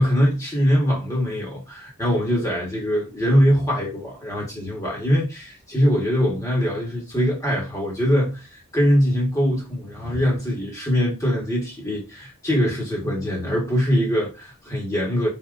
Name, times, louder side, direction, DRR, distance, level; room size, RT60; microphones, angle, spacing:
voice 1, 0.0-15.3, equal, 15° left, 1.2 m, -22 dB
4.1 x 3.6 x 2.5 m
head